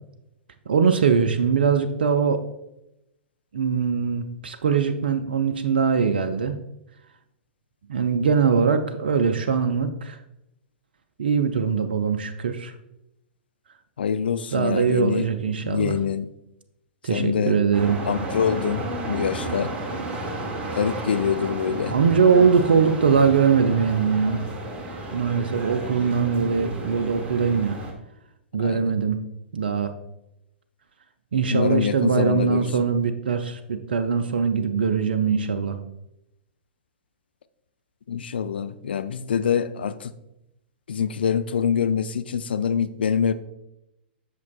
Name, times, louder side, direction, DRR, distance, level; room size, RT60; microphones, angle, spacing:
voice 1, 0.7-2.4 3.5-6.6 7.9-10.2 11.2-12.7 14.5-16.0 17.0-18.0 21.9-24.4 25.1-27.8 28.5-29.2 29.5-29.9 31.3-35.8, right 6 dB, 60° right, 7 dB, 0.5 m, -22 dB
voice 2, 14.0-15.3 15.6-16.3 17.1-17.6 18.0-19.7 20.7-22.0 28.6-28.9 31.5-32.7 38.1-40.1 40.9-43.3, left 7 dB, 65° left, 11 dB, 0.4 m, -25 dB
sound 1, 17.7-27.9, right 2 dB, 20° right, 1.1 m, -32 dB
8.2 x 6.1 x 2.3 m, 0.86 s
figure-of-eight pair, 105°, 6 cm